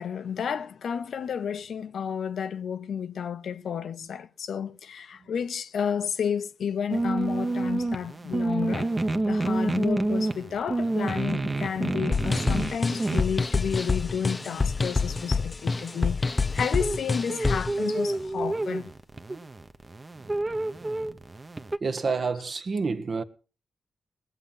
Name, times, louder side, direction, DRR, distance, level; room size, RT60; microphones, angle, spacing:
voice 1, 0.0-18.9, left 7 dB, 75° left, 0.7 m, -31 dB
sound 1, 6.9-21.8, right 2 dB, 30° right, 1.1 m, -29 dB
sound 2, 12.1-17.8, left 4 dB, 35° left, 0.6 m, -27 dB
voice 2, 21.8-23.2, right 4 dB, 55° right, 1.3 m, -28 dB
19.5 x 7.6 x 5.6 m
supercardioid pair, 50°, 0 cm